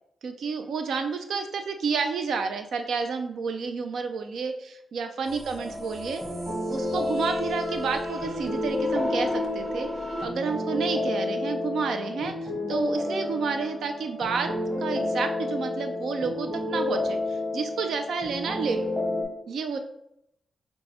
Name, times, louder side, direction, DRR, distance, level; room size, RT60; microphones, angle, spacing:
voice 1, 0.2-6.2 6.7-9.9 10.2-14.5 14.8-18.9 19.5-19.8, right 5 dB, 75° right, 7 dB, 0.5 m, -30 dB
scaryscape digitalgangstha, 5.3-10.3, equal, 45° right, 0.9 m, -36 dB
sound 1, 5.6-19.2, left 2 dB, 15° right, 1.4 m, -30 dB
5.3 x 2.3 x 4.1 m, 0.80 s
cardioid pair, 75°, 0 cm